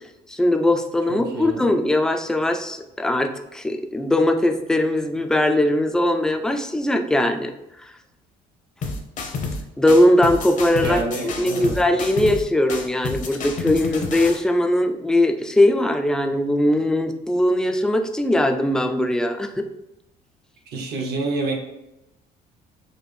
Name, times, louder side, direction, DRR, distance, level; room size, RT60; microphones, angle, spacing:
voice 1, 0.3-7.5 9.8-19.7, left 1 dB, 5° left, 5 dB, 0.3 m, -20 dB
voice 2, 1.1-1.7 10.8-11.8 20.7-21.5, right 3 dB, 70° right, 2 dB, 0.9 m, -28 dB
sound 1, 8.8-9.6 9.9-12.4 12.7-14.4, left 4 dB, 50° left, 0.7 m, -29 dB
4.2 x 2.5 x 3.3 m, 0.89 s
cardioid pair, 110°, 17 cm